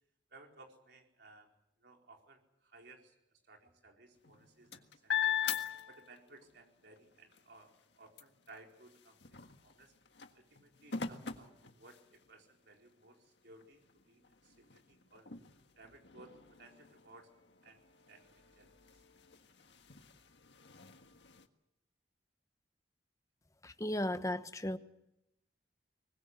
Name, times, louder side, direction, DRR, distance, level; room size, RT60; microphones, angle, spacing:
voice 1, 0.3-1.5 1.8-3.1 3.5-5.4 5.9-9.9 10.3-15.3 15.8-17.3 17.6-17.8 18.1-18.8, right 2 dB, 65° right, 1 dB, 4.5 m, -59 dB
sound 1, 4.2-6.5 7.0-12.4 13.0-13.1 13.5-21.5, left 8 dB, 70° left, 1.7 m, -42 dB
voice 2, 23.6-24.8, left 1 dB, 20° left, 10 dB, 1.0 m, -35 dB
23.5 x 20.5 x 8.1 m, 0.85 s
head